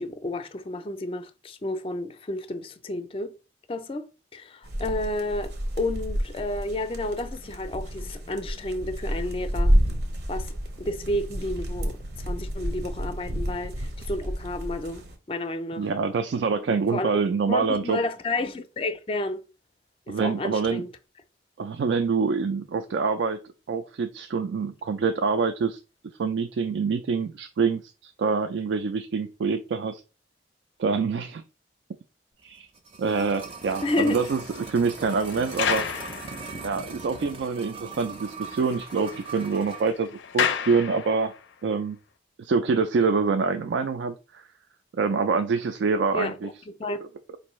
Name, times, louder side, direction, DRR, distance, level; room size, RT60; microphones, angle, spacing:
voice 1, 0.0-3.3 3.7-9.7 10.3-10.5 10.8-12.0 12.2-15.9 16.9-17.1 17.5-19.4 20.1-20.9 33.8-34.2 46.1-47.0, left 2 dB, 30° left, 0.4 m, -31 dB
sound 1, 4.6-15.1, equal, 65° right, 0.7 m, -29 dB
voice 2, 15.8-18.0 20.1-20.8 21.6-23.4 23.7-25.8 26.2-30.0 30.8-31.4 32.4-32.7 33.0-35.9 36.6-41.3 41.6-42.0 42.4-44.4 44.9-46.5, right 5 dB, 80° right, 0.4 m, -26 dB
sound 2, 32.5-39.9 40.2-40.3, right 4 dB, 30° right, 0.5 m, -40 dB
sound 3, 33.4-36.9 37.4-37.5 37.9-38.0 38.3-41.5, left 7 dB, 90° left, 0.4 m, -33 dB
4.5 x 2.6 x 3.1 m
head